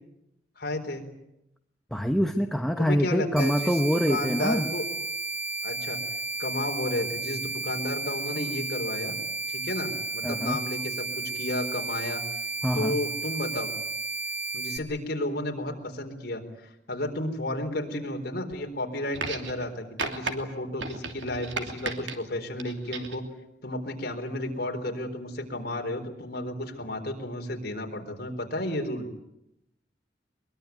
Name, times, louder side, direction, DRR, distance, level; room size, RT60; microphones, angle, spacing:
voice 1, 0.6-1.0 2.8-3.7 4.1-4.8 5.6-6.0 6.4-9.1 9.5-11.1 11.3-12.2 12.7-13.7 14.5-23.2 23.6-29.1, left 1 dB, 60° left, 3 dB, 4.1 m, -32 dB
voice 2, 1.9-4.7 10.2-10.6 12.6-13.0, equal, ahead, 6 dB, 1.0 m, -25 dB
sound 1, 3.4-14.8, right 3 dB, 55° right, 2.3 m, -33 dB
sound 2, 19.1-19.7 20.0-20.3 20.8-22.2 22.6-23.2 24.3-24.4, right 4 dB, 80° right, 2.8 m, -34 dB
22.5 x 22.5 x 9.4 m, 0.85 s
head